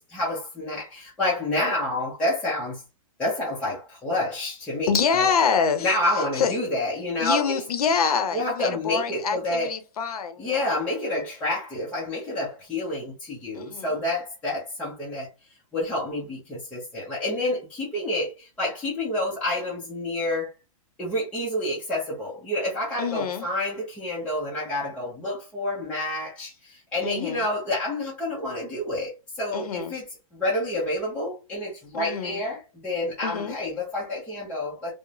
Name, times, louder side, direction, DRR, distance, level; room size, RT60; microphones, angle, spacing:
voice 1, 0.0-2.8 3.2-5.3 5.8-7.6 8.3-9.7 10.4-15.3 15.7-20.5 21.0-30.1 30.3-34.9, left 1 dB, 5° left, 0.6 m, -28 dB
voice 2, 4.9-5.9 6.4-6.6 7.2-10.8 13.5-13.9 23.0-23.5 27.0-27.4 29.5-29.9 31.9-32.4 33.2-33.6, left 6 dB, 80° left, 0.7 m, -26 dB
2.9 x 2.0 x 2.4 m
hypercardioid pair, 155°, 19 cm